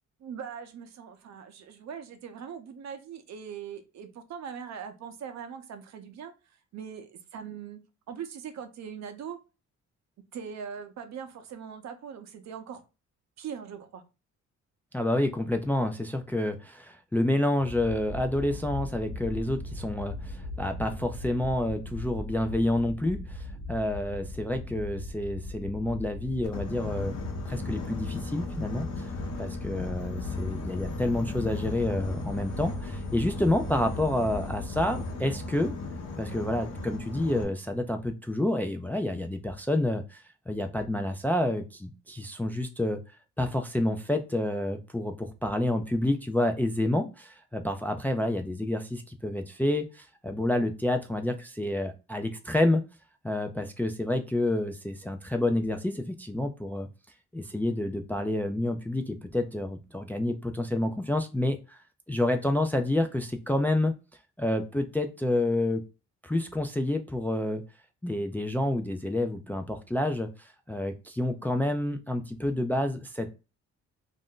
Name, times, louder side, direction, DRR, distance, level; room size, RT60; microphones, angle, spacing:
voice 1, 0.2-6.3 6.7-9.4 10.3-12.8 13.4-14.0, right 7 dB, 65° right, 0.7 m, -41 dB
voice 2, 14.9-27.2 27.5-29.1 29.4-35.7 36.2-43.0 43.4-52.8 53.2-56.9 57.3-61.8 62.1-63.9 64.4-65.8 66.2-67.6 68.0-73.3, left 1 dB, 5° left, 0.3 m, -29 dB
sound 1, 17.6-35.1, left 2 dB, 60° left, 1.1 m, -39 dB
Boat Water vehicle, 26.4-37.4, left 3 dB, 80° left, 0.8 m, -37 dB
2.5 x 2.1 x 3.6 m
cardioid pair, 90°, 30 cm